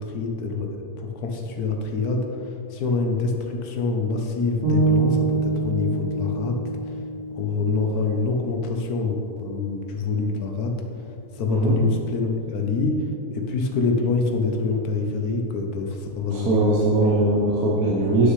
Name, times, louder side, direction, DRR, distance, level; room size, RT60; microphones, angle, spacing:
voice 1, 0.0-6.6 6.8-6.9 7.3-10.7 11.3-13.0 13.3-17.1, left 4 dB, 85° left, 3 dB, 1.3 m, -26 dB
sound 1, 4.6-8.8, right 4 dB, 45° right, 2.3 m, -26 dB
voice 2, 16.3-18.3, right 2 dB, 70° right, -5 dB, 1.4 m, -20 dB
9.5 x 6.4 x 3.2 m, 2.8 s
omnidirectional pair, 1.6 m